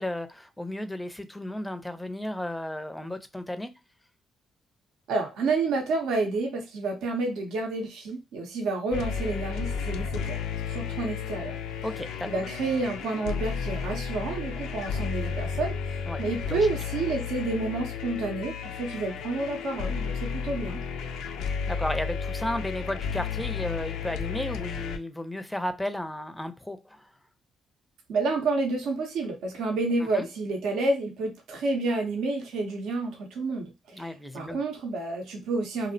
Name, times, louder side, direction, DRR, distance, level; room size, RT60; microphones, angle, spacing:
voice 1, 0.0-3.7 11.8-12.3 16.1-16.7 21.5-27.1 30.1-30.3 33.9-34.6, left 1 dB, 10° left, 10 dB, 0.4 m, -34 dB
voice 2, 5.1-10.4 10.7-11.6 12.3-20.8 28.1-34.1 34.3-35.9, right 3 dB, 75° right, 2 dB, 0.6 m, -29 dB
sound 1, 8.9-25.0, left 6 dB, 80° left, 0.3 m, -33 dB
2.5 x 2.0 x 2.6 m, 0.26 s
supercardioid pair, 55°, 0 cm